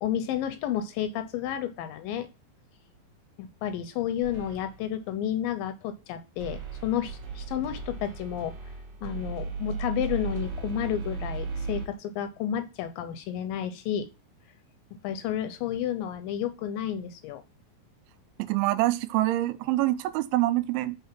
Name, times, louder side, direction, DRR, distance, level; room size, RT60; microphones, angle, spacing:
voice 1, 0.0-2.3 3.4-8.6 9.0-14.1 15.0-17.4, left 10 dB, 80° left, 2.2 m, -31 dB
sound 1, 4.2-4.9 6.4-11.9, right 4 dB, 55° right, 1.8 m, -36 dB
voice 2, 18.4-21.0, right 16 dB, 85° right, 2.5 m, -25 dB
5.6 x 3.5 x 5.8 m
omnidirectional pair, 4.3 m